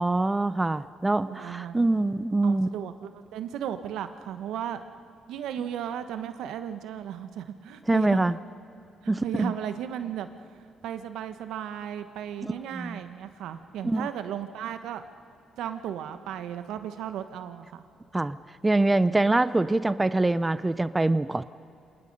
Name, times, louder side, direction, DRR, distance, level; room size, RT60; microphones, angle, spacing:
voice 1, 0.0-2.7 7.9-8.4 9.1-9.5 12.4-13.0 13.8-14.1 18.1-18.4 18.6-21.4, right 2 dB, 15° right, 15 dB, 0.5 m, -24 dB
voice 2, 1.3-1.9 2.4-4.8 5.3-8.3 9.0-10.3 10.8-15.0 15.6-17.8, right 9 dB, 85° right, 9 dB, 1.1 m, -35 dB
27.0 x 19.5 x 5.4 m, 2.6 s
cardioid pair, 90°, 0 cm